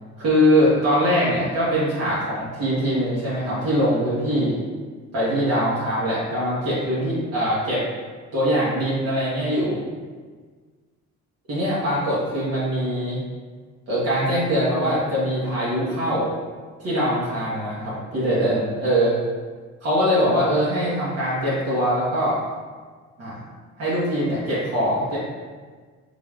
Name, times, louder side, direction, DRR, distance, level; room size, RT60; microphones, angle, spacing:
voice 1, 0.2-4.5 5.1-7.8 8.3-9.8 11.5-13.2 13.9-16.3 16.8-19.1 19.8-22.4 23.2-23.4 23.8-25.2, equal, 55° right, -9 dB, 1.2 m, -22 dB
3.9 x 3.5 x 2.4 m, 1.5 s
cardioid pair, 90°, 30 cm